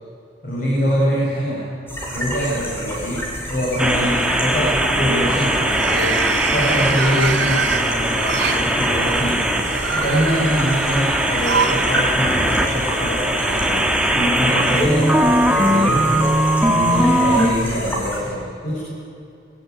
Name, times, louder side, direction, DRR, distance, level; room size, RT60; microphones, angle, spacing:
voice 1, 0.4-1.7 2.1-16.2 16.6-18.8, equal, 50° left, -7 dB, 7.9 m, -24 dB
sound 1, 1.9-18.2, equal, 10° left, 5.9 m, -30 dB
sound 2, 2.0-2.7 3.0-3.4 5.5-8.6 9.5-11.9 12.2-12.3 13.4-13.5, right 5 dB, 90° right, 2.4 m, -26 dB
sound 3, 3.8-17.5, right 1 dB, 5° right, 1.8 m, -20 dB
24.5 x 17.0 x 9.8 m, 2.6 s
head